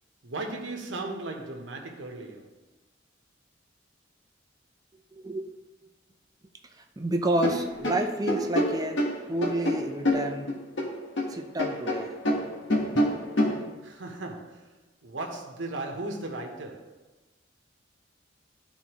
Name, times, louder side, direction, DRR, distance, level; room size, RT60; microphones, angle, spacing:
voice 1, 0.2-2.6 13.8-14.7 15.0-17.0, right 2 dB, 70° right, 1.1 m, -36 dB
voice 2, 5.1-5.6 6.7-9.0 9.3-10.5 11.3-12.1 12.7-13.1, right 1 dB, 20° right, 0.6 m, -30 dB
sound 1, 7.4-11.3 11.6-13.6, equal, 70° left, 1.3 m, -27 dB
12.0 x 4.1 x 3.1 m
head